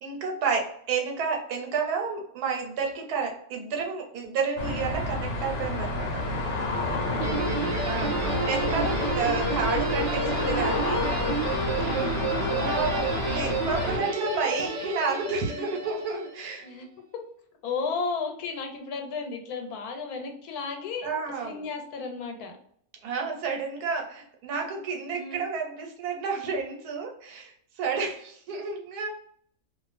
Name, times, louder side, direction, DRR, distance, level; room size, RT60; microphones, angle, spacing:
voice 1, 0.0-6.2 7.9-8.1 8.5-11.0 12.6-16.7 21.0-21.6 23.0-29.1, right 5 dB, 90° right, 1 dB, 1.3 m, -30 dB
sound 1, 4.6-14.0, left 2 dB, 60° left, 0.9 m, -29 dB
voice 2, 7.2-8.4 11.9-12.9 16.6-16.9 17.6-21.1 21.4-22.5 25.1-25.4, left 4 dB, 85° left, 4 dB, 1.2 m, -34 dB
Guitar, 7.2-16.5, right 3 dB, 70° right, 0.4 m, -31 dB
2.4 x 2.4 x 2.5 m, 0.65 s
omnidirectional pair, 1.6 m